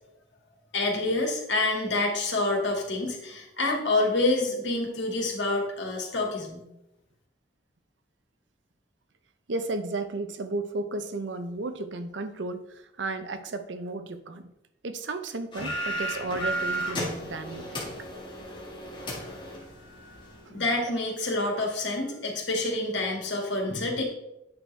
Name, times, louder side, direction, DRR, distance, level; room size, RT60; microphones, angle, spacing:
voice 1, 0.7-6.7 20.5-24.0, left 2 dB, 85° left, 0 dB, 2.0 m, -27 dB
voice 2, 9.5-14.5 14.8-17.9 20.4-21.0, right 2 dB, 90° right, 9 dB, 0.7 m, -34 dB
sound 1, 15.5-20.4, right 1 dB, 25° left, 1.7 m, -34 dB
8.7 x 6.3 x 3.4 m, 0.87 s
head